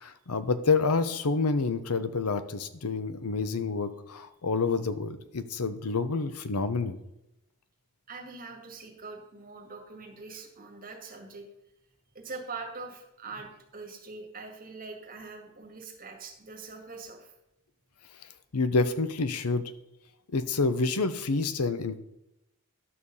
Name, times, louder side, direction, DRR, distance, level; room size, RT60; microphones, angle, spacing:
voice 1, 0.0-7.0 18.5-19.7 20.3-22.0, left 4 dB, 80° left, 11 dB, 0.8 m, -28 dB
voice 2, 8.1-11.4 12.1-17.3, right 4 dB, 40° right, 2 dB, 2.0 m, -43 dB
11.0 x 6.6 x 5.5 m, 0.87 s
head